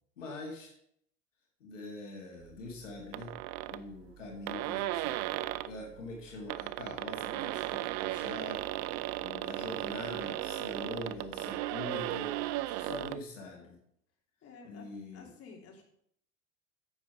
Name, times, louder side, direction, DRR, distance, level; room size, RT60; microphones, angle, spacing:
voice 1, 0.2-0.7 1.6-3.3 3.7-8.6 9.1-12.3 12.7-13.8 14.6-15.3, left 2 dB, 85° left, -1 dB, 2.2 m, -44 dB
sound 1, 3.1-3.8 4.2-4.3 4.5-5.7 6.3-13.2, right 16 dB, 45° right, 0.5 m, -36 dB
voice 2, 10.1-12.4 14.4-14.9 15.1-15.8, left 5 dB, 40° left, 0 dB, 3.0 m, -52 dB
8.8 x 8.0 x 4.9 m, 0.68 s
hypercardioid pair, 75°, 37 cm